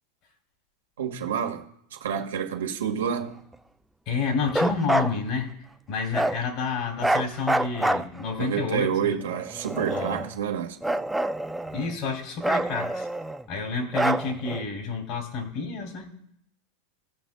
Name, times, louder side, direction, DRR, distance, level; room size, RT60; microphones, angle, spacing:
voice 1, 1.0-3.4 8.4-11.0, right 8 dB, 80° right, 1.5 m, -29 dB
voice 2, 4.1-5.5 5.9-9.2 9.9-10.2 11.7-13.1 13.5-16.1, left 4 dB, 55° left, 2.7 m, -29 dB
Bark, 4.5-5.1 6.1-6.4 7.0-8.5 9.3-10.3 10.8-11.9 12.4-13.4 13.9-14.6, right 1 dB, 5° right, 0.5 m, -26 dB
18.0 x 6.1 x 2.2 m
hypercardioid pair, 95°, 0 cm